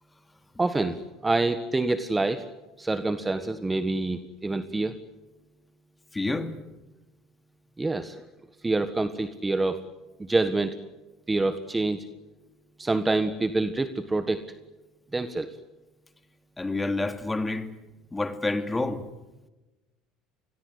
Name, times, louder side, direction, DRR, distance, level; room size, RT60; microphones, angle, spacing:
voice 1, 0.6-2.4 2.8-5.0 7.8-8.2 8.6-9.8 10.2-10.8 11.3-12.0 12.8-14.4 15.1-15.5, right 2 dB, 15° right, 1.4 m, -26 dB
voice 2, 6.1-6.5 16.6-17.7 18.1-19.0, left 2 dB, 15° left, 2.5 m, -28 dB
28.0 x 21.5 x 8.1 m
supercardioid pair, 100°, 0 cm